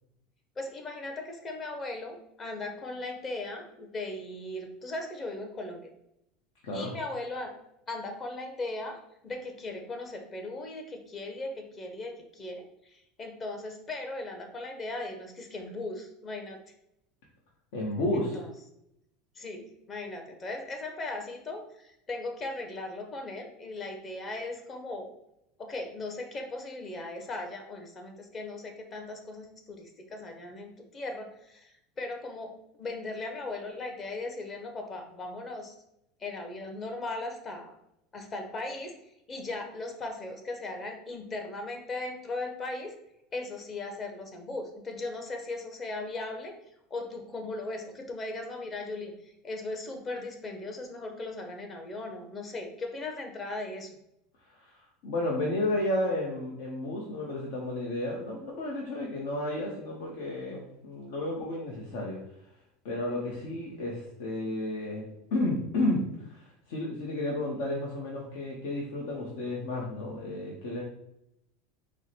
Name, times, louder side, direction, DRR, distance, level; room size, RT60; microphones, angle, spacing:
voice 1, 0.6-5.9 6.7-7.5 7.9-9.0 9.2-16.6 18.1-18.5 19.4-25.1 25.6-35.8 36.2-37.8 38.1-38.9 39.3-42.9 43.3-46.5 46.9-54.0, left 2 dB, 30° left, 4 dB, 0.8 m, -38 dB
voice 2, 17.7-18.4 54.4-62.2 62.8-65.0 65.3-70.8, left 1 dB, 70° left, -3 dB, 0.9 m, -32 dB
4.6 x 2.1 x 4.2 m, 0.81 s
supercardioid pair, 120°, 0 cm